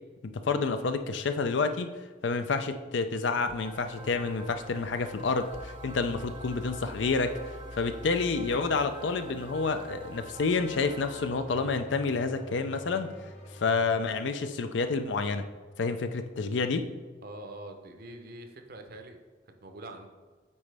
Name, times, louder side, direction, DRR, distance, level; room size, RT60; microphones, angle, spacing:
voice 1, 0.2-1.9 2.2-13.1 13.5-15.4 15.8-16.8, left 4 dB, 75° left, 9 dB, 0.5 m, -29 dB
sound 1, 3.5-14.0, left 1 dB, 40° left, 0.9 m, -47 dB
sound 2, 3.5-11.8, right 3 dB, 30° right, 0.4 m, -48 dB
voice 2, 17.2-19.2 19.6-20.1, right 1 dB, 55° right, 5 dB, 0.7 m, -44 dB
8.7 x 4.1 x 3.4 m, 1.4 s
head